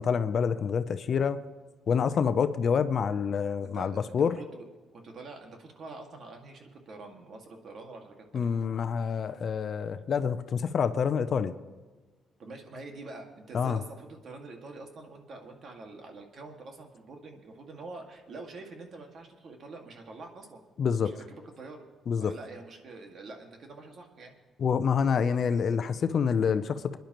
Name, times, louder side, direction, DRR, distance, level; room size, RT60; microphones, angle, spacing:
voice 1, 0.0-1.4 1.9-4.3 8.3-11.5 13.5-13.8 20.8-21.1 22.1-22.3 24.6-27.0, left 6 dB, 55° left, 0.6 m, -27 dB
voice 2, 3.6-4.7 4.9-8.5 12.4-20.6 21.0-21.9 22.2-24.3 25.0-25.2, right 3 dB, 55° right, 2.1 m, -45 dB
27.0 x 10.5 x 3.1 m
cardioid pair, 90°, 0 cm